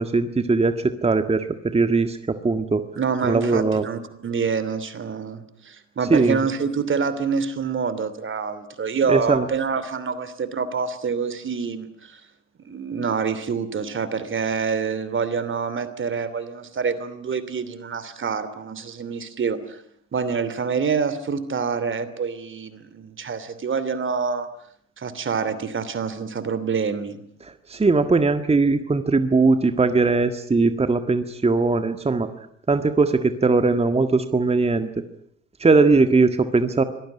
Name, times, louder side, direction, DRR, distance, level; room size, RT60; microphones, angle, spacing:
voice 1, 0.0-2.8 3.2-3.8 6.1-6.4 9.1-9.5 27.4-32.3 32.7-34.9 35.6-36.8, right 3 dB, 15° right, 9 dB, 1.7 m, -20 dB
voice 2, 3.0-12.2 12.6-19.8 20.1-24.5 25.0-27.2, right 5 dB, 30° right, 14 dB, 2.9 m, -26 dB
25.0 x 19.0 x 9.9 m, 0.70 s
hypercardioid pair, 65°, 38 cm